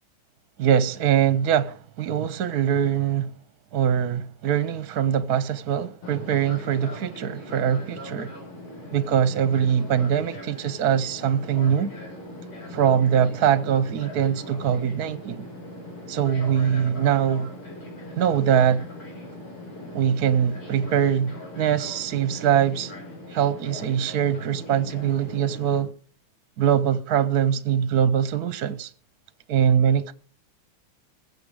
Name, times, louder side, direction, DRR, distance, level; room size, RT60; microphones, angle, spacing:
voice 1, 0.6-3.3 3.7-8.3 8.9-11.9 12.7-15.5 16.1-17.5 18.2-18.8 19.9-22.9 23.3-25.9 26.6-28.9 29.5-30.1, right 9 dB, 60° right, 1.1 m, -22 dB
Fixed-wing aircraft airplane, 6.0-25.8, left 1 dB, 90° left, 5.6 m, -40 dB
21.5 x 7.4 x 4.8 m
omnidirectional pair, 2.3 m